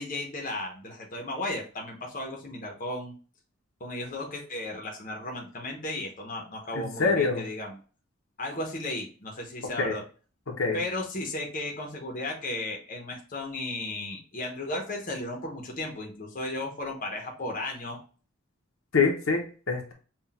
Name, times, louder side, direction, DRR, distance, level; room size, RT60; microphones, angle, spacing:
voice 1, 0.0-3.1 3.8-7.8 8.4-10.0 10.7-18.0, left 2 dB, 40° left, 1 dB, 0.9 m, -35 dB
voice 2, 6.7-7.4 9.8-9.9 10.5-10.8 18.9-19.9, left 4 dB, 70° left, 1 dB, 0.9 m, -25 dB
5.7 x 2.4 x 2.3 m, 0.37 s
head